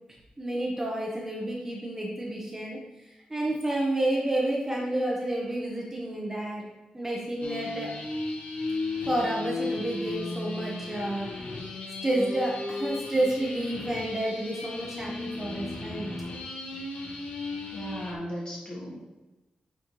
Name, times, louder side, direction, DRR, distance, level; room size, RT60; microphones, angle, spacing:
voice 1, 0.4-2.8 3.3-6.6 6.9-7.9 9.1-11.3 12.0-16.1, right 1 dB, 15° right, -3 dB, 0.9 m, -30 dB
sound 1, 7.4-18.1, left 3 dB, 85° left, 1.1 m, -35 dB
voice 2, 17.7-18.9, equal, 35° left, -4 dB, 2.0 m, -36 dB
8.7 x 4.1 x 3.1 m, 1.0 s
wide cardioid pair, 165°, 3 cm